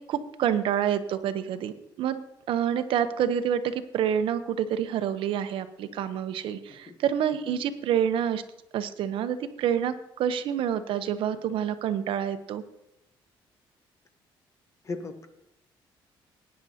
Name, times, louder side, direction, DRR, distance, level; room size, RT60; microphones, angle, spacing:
voice 1, 0.1-2.2 2.5-8.4 8.7-12.6, right 9 dB, 70° right, 10 dB, 0.8 m, -28 dB
voice 2, 14.8-15.3, left 3 dB, 35° left, 9 dB, 1.0 m, -37 dB
19.0 x 9.5 x 2.8 m, 0.87 s
cardioid pair, 135°, 9 cm